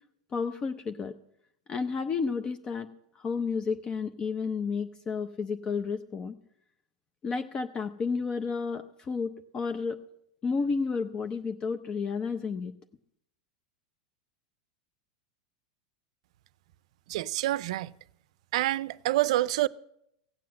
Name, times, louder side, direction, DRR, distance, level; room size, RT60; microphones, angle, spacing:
voice 1, 0.3-1.1 1.7-2.9 3.2-6.3 7.2-10.0 10.4-12.7, left 5 dB, 25° left, 0.7 m, -31 dB
voice 2, 17.1-17.9 18.5-19.7, right 16 dB, 70° right, 0.5 m, -27 dB
16.5 x 7.6 x 7.6 m
supercardioid pair, 130°, 3 cm